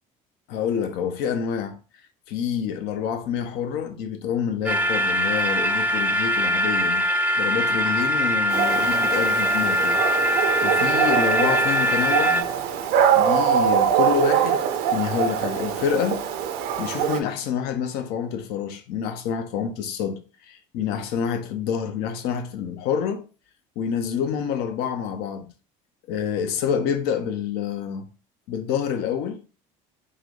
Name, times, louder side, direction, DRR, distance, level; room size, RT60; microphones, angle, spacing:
voice 1, 0.5-1.8 2.3-7.0 7.4-12.5 13.1-14.7 14.9-16.2 16.8-23.2 23.8-25.5 26.1-28.1 28.5-29.4, left 7 dB, 70° left, 0.7 m, -27 dB
sound 1, 4.7-12.4, equal, 10° right, 0.6 m, -22 dB
Dog, 8.5-17.2, right 8 dB, 65° right, 0.6 m, -23 dB
3.8 x 2.6 x 3.2 m
supercardioid pair, 80°, 17 cm